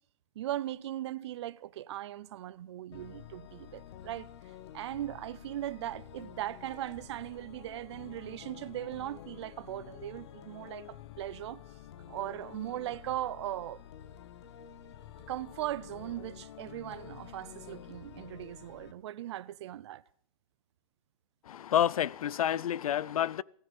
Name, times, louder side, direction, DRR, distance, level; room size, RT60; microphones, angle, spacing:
voice 1, 0.4-4.3 4.7-11.6 12.1-13.8 15.3-20.0, right 13 dB, 55° right, 0.5 m, -39 dB
sound 1, 2.9-18.9, left 10 dB, 50° left, 1.0 m, -50 dB
voice 2, 21.5-23.4, left 10 dB, 85° left, 0.5 m, -29 dB
15.5 x 13.5 x 5.3 m
hypercardioid pair, 160°, 18 cm